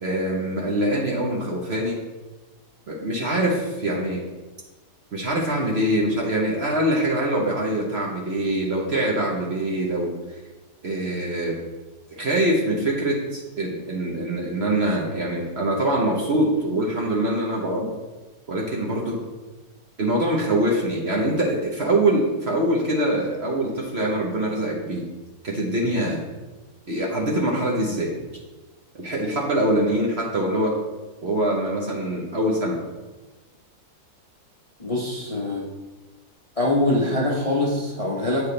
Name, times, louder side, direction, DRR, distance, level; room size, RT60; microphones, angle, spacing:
voice 1, 0.0-2.0 2.9-4.2 5.1-10.1 10.8-11.5 12.2-17.9 18.5-19.2 20.0-25.0 25.4-26.2 26.9-28.1 29.0-30.8 31.2-32.8, right 1 dB, 45° right, -2 dB, 1.0 m, -24 dB
voice 2, 34.8-35.7 36.6-38.5, left 1 dB, 30° left, -4 dB, 0.7 m, -24 dB
8.9 x 4.8 x 3.2 m, 1.1 s
omnidirectional pair, 1.9 m